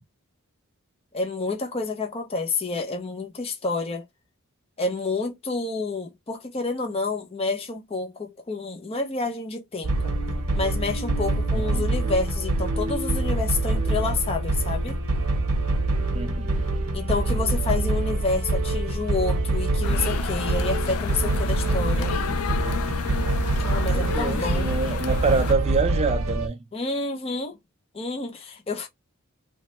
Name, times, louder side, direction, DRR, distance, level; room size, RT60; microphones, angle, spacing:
voice 1, 1.1-4.0 4.8-10.1 10.5-15.0 16.9-22.1 23.6-24.7 26.7-27.6 27.9-28.9, left 3 dB, 25° left, 0.5 m, -29 dB
sound 1, 9.8-26.5, right 2 dB, 85° right, 0.7 m, -25 dB
voice 2, 11.5-11.8 16.1-16.6 23.9-26.6, right 4 dB, 30° right, 0.4 m, -26 dB
sound 2, 19.8-25.5, left 7 dB, 75° left, 0.4 m, -32 dB
3.1 x 2.2 x 2.9 m
head